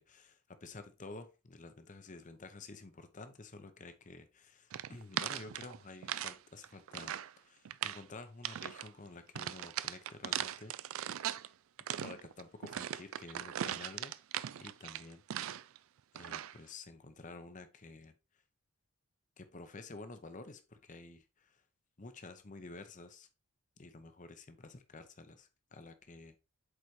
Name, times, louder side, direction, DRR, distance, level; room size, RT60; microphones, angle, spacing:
voice 1, 0.0-10.7 12.0-14.1 14.6-15.6 16.1-18.1 19.4-21.6 22.0-23.3 23.8-26.4, left 3 dB, 35° left, 0.7 m, -51 dB
sound 1, 4.7-6.4 6.6-7.3 7.7-8.0 8.4-8.9 9.4-11.5 11.8-15.8 16.2-16.6, right 11 dB, 65° right, 0.3 m, -39 dB
8.1 x 4.1 x 3.1 m
head